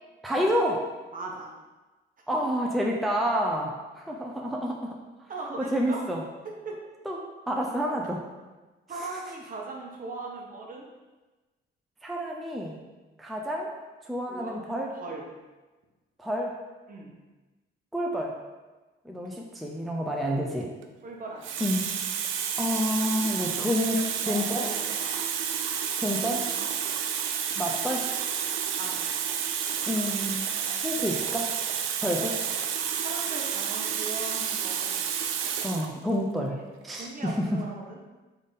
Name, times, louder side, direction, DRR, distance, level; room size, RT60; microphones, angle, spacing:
voice 1, 0.2-0.8 2.3-5.0 5.6-6.2 7.1-7.2 7.5-8.2 12.0-12.8 13.2-13.7 14.0-14.9 16.2-16.5 17.9-18.3 19.1-20.7 21.6-21.9 22.6-24.7 26.0-26.5 27.6-28.1 29.9-30.5 30.8-31.5 32.0-32.4 35.6-36.6 36.8-37.6, equal, ahead, -1 dB, 0.5 m, -29 dB
voice 2, 1.1-1.5 2.6-2.8 5.3-6.0 6.6-6.8 8.9-10.9 14.3-15.3 16.9-17.2 21.0-21.6 23.6-23.8 24.2-25.1 27.6-27.8 28.8-29.1 33.0-35.1 36.4-36.5 37.0-38.0, right 3 dB, 45° right, -1 dB, 1.0 m, -39 dB
Water tap faucet, 20.6-20.8 21.4-35.9 36.8-37.0, right 8 dB, 85° right, 0.4 m, -30 dB
3.6 x 3.5 x 4.0 m, 1.2 s
cardioid pair, 90°, 20 cm